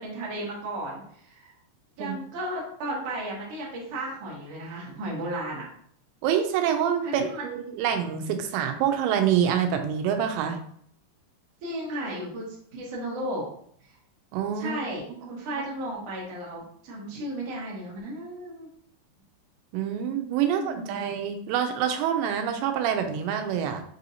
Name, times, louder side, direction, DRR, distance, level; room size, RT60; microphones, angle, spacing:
voice 1, 0.0-1.5 2.0-5.6 7.0-7.5 11.6-13.4 14.5-18.7 20.4-21.1, right 1 dB, 65° right, -5 dB, 1.6 m, -34 dB
voice 2, 6.2-10.6 14.3-14.8 15.1-15.2 19.7-23.8, right 9 dB, 85° right, 6 dB, 2.7 m, -26 dB
6.8 x 2.7 x 2.7 m, 0.63 s
omnidirectional pair, 5.1 m